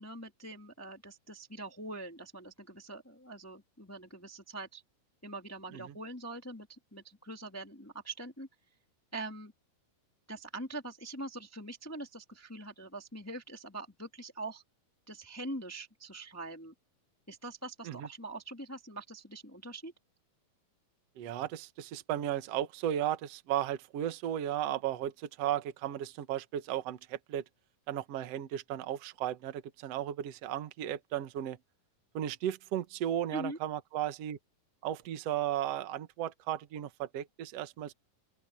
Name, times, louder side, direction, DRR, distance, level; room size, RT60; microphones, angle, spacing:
voice 1, 0.0-4.8 5.2-8.5 9.1-9.5 10.3-14.6 15.1-16.7 17.3-19.9 33.3-33.6, right 2 dB, 20° left, 0.3 m, -43 dB
voice 2, 21.2-27.4 27.9-31.6 32.1-34.4 34.8-37.9, right 11 dB, 60° right, 2.0 m, -35 dB
open air
omnidirectional pair, 4.0 m